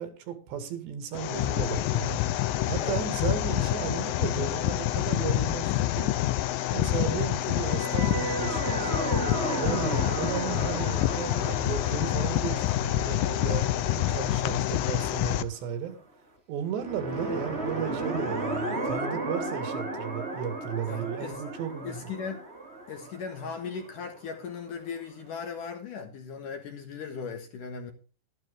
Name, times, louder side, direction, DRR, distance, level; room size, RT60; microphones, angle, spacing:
voice 1, 0.0-2.2 2.7-6.1 6.7-8.9 9.6-16.0 16.5-22.1, right 8 dB, 75° right, 4.2 m, -35 dB
sound 1, 1.1-15.4, left 14 dB, 85° left, 2.0 m, -27 dB
sound 2, 7.6-14.8 16.7-24.5, right 2 dB, 25° right, 1.5 m, -35 dB
voice 2, 20.9-21.4 21.8-22.4 22.9-27.9, left 6 dB, 60° left, 2.5 m, -38 dB
13.0 x 12.0 x 3.7 m
omnidirectional pair, 5.1 m